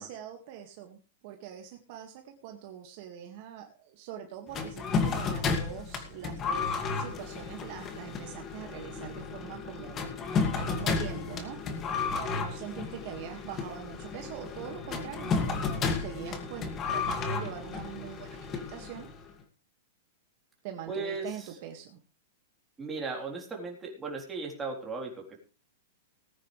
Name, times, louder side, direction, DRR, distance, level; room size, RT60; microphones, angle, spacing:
voice 1, 0.0-11.6 12.1-19.1 20.6-22.0, right 9 dB, 45° right, 3 dB, 2.0 m, -43 dB
sound 1, 4.5-19.2, left 4 dB, 25° left, 2.3 m, -33 dB
voice 2, 20.9-21.3 22.8-25.4, right 3 dB, 15° right, 0 dB, 3.8 m, -36 dB
19.0 x 9.7 x 3.4 m, 0.33 s
hypercardioid pair, 145°, 0 cm